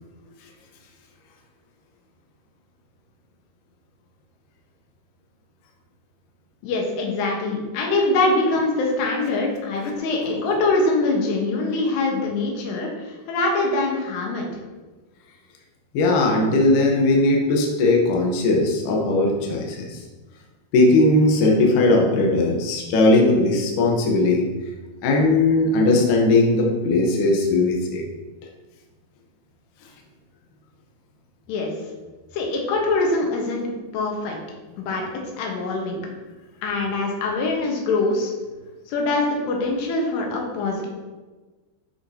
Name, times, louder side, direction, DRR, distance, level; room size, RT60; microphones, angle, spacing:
voice 1, 6.6-14.5 31.5-31.7 32.3-33.7 33.9-34.4 34.8-35.0 35.4-36.0 36.6-38.3 38.9-40.9, left 2 dB, 90° left, 0 dB, 3.3 m, -23 dB
voice 2, 15.9-20.0 20.7-24.5 25.0-28.0, left 2 dB, 70° left, -1 dB, 2.3 m, -18 dB
8.8 x 5.8 x 2.8 m, 1.2 s
omnidirectional pair, 4.7 m